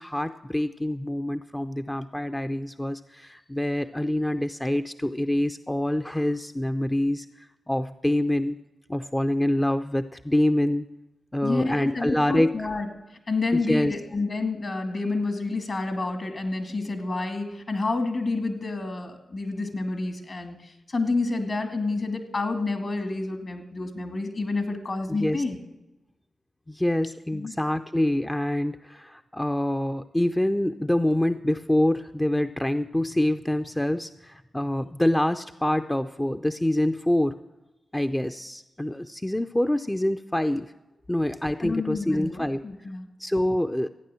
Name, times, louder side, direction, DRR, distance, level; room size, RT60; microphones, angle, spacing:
voice 1, 0.0-8.6 8.9-10.8 11.3-12.6 13.5-13.9 25.1-25.4 26.7-37.4 37.9-40.7 41.1-42.6 43.2-43.9, left 1 dB, 15° left, 8 dB, 0.5 m, -26 dB
voice 2, 11.4-12.9 13.3-25.6 27.3-27.5 41.6-43.1, left 3 dB, 55° left, 6 dB, 2.3 m, -29 dB
14.0 x 9.4 x 7.6 m, 1.0 s
cardioid pair, 50°, 0 cm